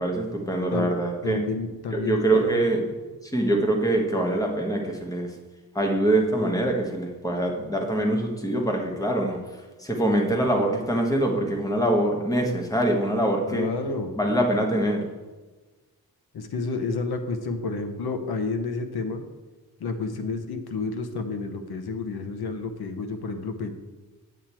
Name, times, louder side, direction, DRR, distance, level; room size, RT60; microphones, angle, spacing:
voice 1, 0.0-1.4 1.9-3.0 3.2-5.3 5.7-9.4 9.8-13.7 14.2-15.1, right 1 dB, 10° left, 1 dB, 1.3 m, -24 dB
voice 2, 1.2-2.6 13.5-14.1 16.3-19.2 19.8-23.7, left 4 dB, 85° left, 7 dB, 1.0 m, -30 dB
9.0 x 8.2 x 4.4 m, 1.2 s
wide cardioid pair, 180°, 37 cm